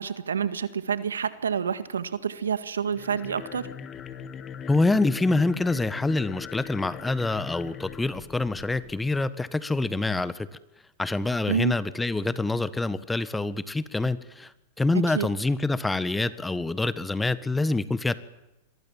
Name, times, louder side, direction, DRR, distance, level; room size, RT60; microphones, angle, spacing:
voice 1, 0.0-3.7 11.5-11.7 15.1-15.3, right 7 dB, 90° right, 12 dB, 1.8 m, -28 dB
sound 1, 2.9-9.1, left 8 dB, 30° left, 2.4 m, -41 dB
voice 2, 4.7-10.5 11.0-14.5 14.8-18.2, left 2 dB, 10° left, 15 dB, 1.5 m, -26 dB
28.0 x 23.0 x 7.4 m, 0.97 s
hypercardioid pair, 105°, 0 cm